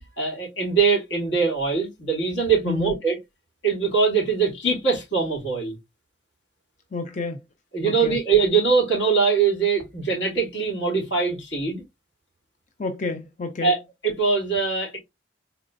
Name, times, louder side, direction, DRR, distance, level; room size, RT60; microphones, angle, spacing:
voice 1, 0.2-3.2 3.6-5.7 7.7-11.8 13.6-15.0, right 5 dB, 85° left, 2.8 m, -22 dB
voice 2, 6.9-7.4 7.8-8.2 12.8-13.7, left 3 dB, 40° left, 0.5 m, -30 dB
4.3 x 3.8 x 2.5 m
head